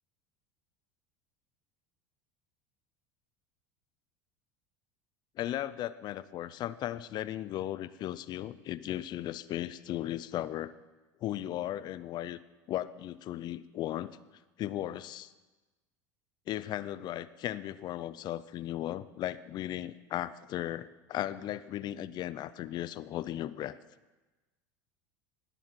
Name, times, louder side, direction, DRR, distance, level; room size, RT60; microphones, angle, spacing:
voice 1, 5.4-10.7 11.2-12.4 12.7-14.1 14.6-15.3 16.5-23.8, left 13 dB, 50° left, 16 dB, 0.6 m, -36 dB
19.0 x 7.1 x 6.0 m, 1.2 s
hypercardioid pair, 95°, 10 cm